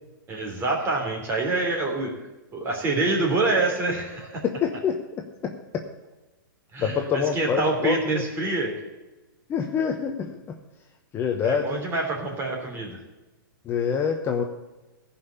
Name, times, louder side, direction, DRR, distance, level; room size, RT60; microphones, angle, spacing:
voice 1, 0.3-2.1 2.5-4.4 6.7-8.7 11.4-13.0, right 2 dB, 20° right, 1 dB, 3.2 m, -26 dB
voice 2, 4.4-5.0 6.8-8.2 9.5-10.4 11.1-11.8 13.7-14.4, left 7 dB, 20° left, 3 dB, 0.9 m, -26 dB
15.0 x 5.7 x 8.3 m, 1.1 s
hypercardioid pair, 145°, 11 cm